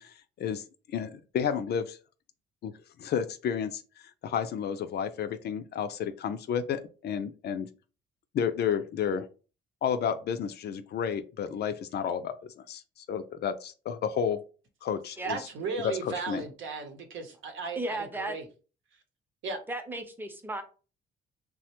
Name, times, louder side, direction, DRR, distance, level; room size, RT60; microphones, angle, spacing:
voice 1, 0.0-2.0 2.6-2.7 3.0-3.8 4.2-7.7 8.3-9.3 9.8-12.8 13.1-14.4 14.8-15.4 15.8-16.4, left 7 dB, 55° left, 0.4 m, -31 dB
voice 2, 15.3-18.4 19.4-19.6, right 4 dB, 75° right, 0.8 m, -36 dB
voice 3, 17.8-18.4 19.7-20.6, right 2 dB, 10° right, 0.6 m, -35 dB
3.2 x 2.1 x 2.9 m
cardioid pair, 90°, 20 cm